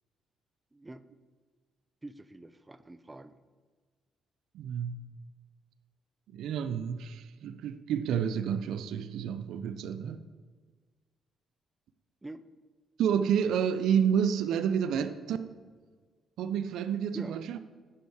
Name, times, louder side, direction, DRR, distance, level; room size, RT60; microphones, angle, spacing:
voice 1, 0.7-1.0 2.0-3.4 12.2-12.4 17.1-17.4, right 2 dB, 15° right, 0.4 m, -45 dB
voice 2, 4.5-5.0 6.3-10.3 13.0-15.4 16.4-17.6, right 8 dB, 80° right, 0.4 m, -29 dB
8.4 x 6.4 x 4.8 m
cardioid pair, 90°, 0 cm